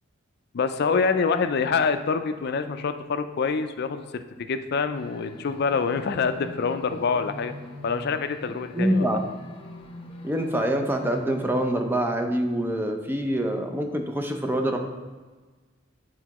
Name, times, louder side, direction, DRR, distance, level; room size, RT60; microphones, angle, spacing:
voice 1, 0.5-7.5 7.8-9.2, left 5 dB, 55° left, 9 dB, 0.4 m, -26 dB
sound 1, 4.9-11.5, left 1 dB, 30° left, 0.8 m, -43 dB
voice 2, 8.7-9.3 10.2-14.8, right 1 dB, 10° right, 4 dB, 0.5 m, -25 dB
8.2 x 4.5 x 3.0 m, 1.3 s
head